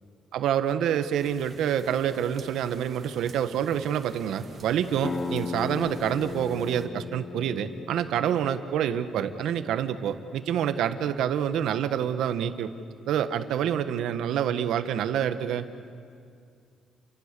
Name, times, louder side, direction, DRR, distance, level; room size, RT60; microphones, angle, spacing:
voice 1, 0.3-12.7 13.1-15.7, right 9 dB, 80° right, 10 dB, 1.3 m, -27 dB
sound 1, 1.1-6.9, right 4 dB, 35° right, 2.2 m, -51 dB
sound 2, 5.0-10.4, left 5 dB, 25° left, 0.5 m, -37 dB
30.0 x 24.0 x 6.8 m, 2.3 s
cardioid pair, 125°, 0 cm